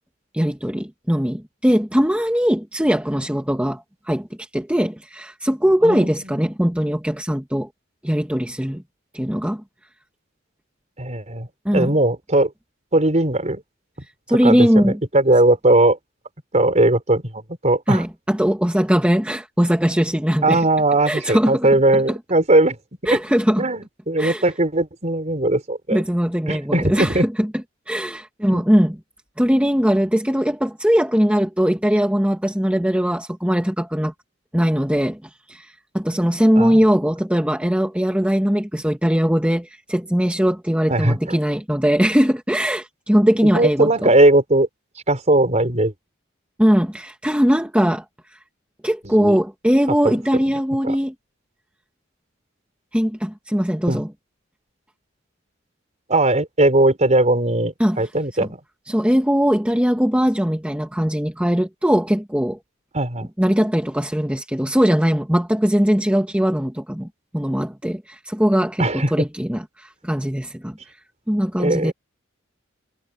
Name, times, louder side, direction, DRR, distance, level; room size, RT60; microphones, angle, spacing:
voice 1, 0.3-7.7 8.0-8.8 9.1-9.6 11.6-11.9 14.3-15.0 17.9-20.6 21.1-21.7 22.1-22.2 23.1-23.6 24.2-24.4 25.9-27.5 27.9-29.0 29.4-34.1 34.5-44.1 46.6-48.0 48.8-51.1 52.9-54.1 57.8-58.0 58.9-62.6 63.4-67.1 67.3-70.8 71.3-71.9, equal, 5° right, 1.6 m, -20 dB
voice 2, 5.8-6.4 11.0-11.5 11.7-12.5 12.9-13.6 14.3-16.0 16.5-18.0 20.4-22.8 23.1-23.2 23.6-26.0 26.5-27.2 28.5-28.6 36.6-36.8 40.9-41.2 43.5-44.7 45.1-45.9 49.0-49.4 50.0-50.1 50.8-51.0 53.9-54.0 56.1-58.6 62.9-63.3 68.8-69.1 71.6-71.9, right 2 dB, 35° right, 4.9 m, -19 dB
head